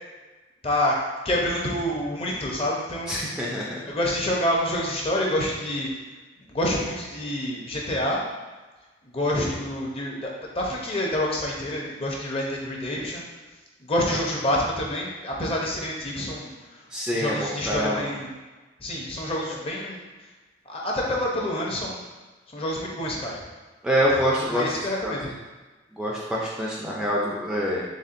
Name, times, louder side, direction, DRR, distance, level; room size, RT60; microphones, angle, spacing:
voice 1, 0.6-1.0 1.2-3.1 3.8-5.9 6.4-8.2 9.0-13.3 13.8-16.8 17.1-18.3 18.8-20.0 20.7-22.0 22.5-23.4 24.1-24.2 24.5-25.3, left 1 dB, 30° left, -2 dB, 0.7 m, -27 dB
voice 2, 3.1-3.8 16.9-18.1 23.8-25.1 26.0-27.8, equal, 5° right, -5 dB, 0.4 m, -26 dB
4.1 x 3.5 x 2.5 m, 1.2 s
head